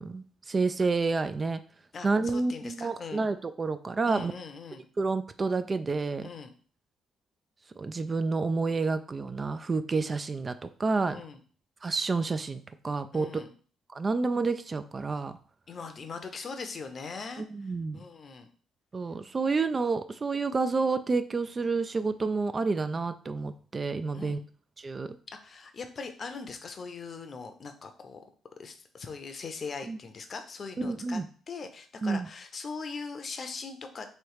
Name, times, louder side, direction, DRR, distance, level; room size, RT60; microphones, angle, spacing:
voice 1, 0.0-1.6 2.0-4.3 5.0-6.3 7.8-11.2 11.8-13.4 13.9-15.4 17.5-18.0 18.9-24.4 24.8-25.2 29.9-30.0 30.8-31.3 32.0-32.3, right 4 dB, 30° right, 11 dB, 0.3 m, -29 dB
voice 2, 1.9-3.3 4.1-4.9 6.2-6.5 11.1-11.4 13.1-13.5 15.7-18.5 24.1-24.4 25.3-28.2 28.6-31.2 31.5-34.1, left 4 dB, 45° left, 7 dB, 0.7 m, -41 dB
3.2 x 3.0 x 4.7 m, 0.43 s
cardioid pair, 90°, 0 cm